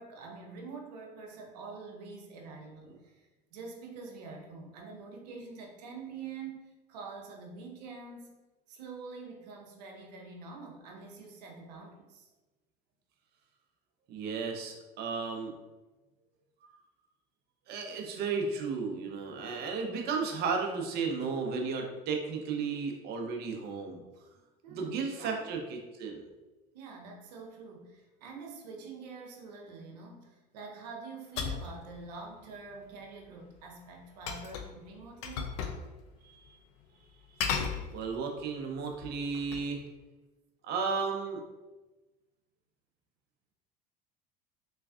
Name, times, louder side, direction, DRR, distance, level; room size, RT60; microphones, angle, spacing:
voice 1, 0.0-8.3 8.7-12.3 24.2-24.3 24.6-25.5 26.7-35.6, right 4 dB, 90° right, 1 dB, 0.7 m, -46 dB
voice 2, 14.1-15.6 17.7-24.0 24.7-26.3 36.2-36.6 37.9-39.8 40.6-41.4, right 5 dB, 55° right, 2 dB, 0.7 m, -34 dB
sound 1, 31.3-31.7 34.3-34.8 35.2-35.8 36.1-36.2 37.4-38.3 38.9-39.7, left 6 dB, 70° left, 0.5 m, -35 dB
3.4 x 3.1 x 2.4 m, 1.1 s
supercardioid pair, 95°, 20 cm